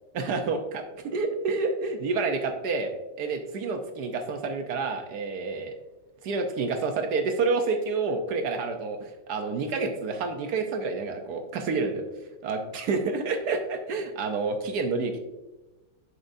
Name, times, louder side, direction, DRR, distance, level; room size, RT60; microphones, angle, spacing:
voice 1, 0.1-5.7 6.2-12.0 12.4-12.6 12.9-15.2, right 4 dB, 65° right, 5 dB, 1.0 m, -29 dB
8.3 x 6.4 x 2.6 m, 1.1 s
omnidirectional pair, 2.3 m